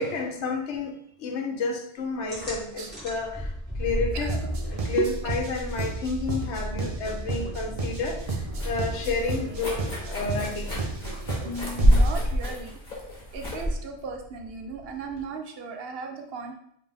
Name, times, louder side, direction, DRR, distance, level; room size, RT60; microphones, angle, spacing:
voice 1, 0.0-4.4 4.7-10.7, left 3 dB, 85° left, 4 dB, 1.0 m, -31 dB
sound 1, 2.3-9.5, equal, 10° left, 1.8 m, -36 dB
sound 2, 4.3-12.3, right 3 dB, 45° right, 0.5 m, -33 dB
sound 3, 7.5-15.2, equal, 45° left, 1.4 m, -28 dB
voice 2, 11.4-12.8 13.3-16.6, right 4 dB, 65° right, 3 dB, 0.8 m, -35 dB
5.2 x 2.8 x 3.5 m, 0.72 s
omnidirectional pair, 1.1 m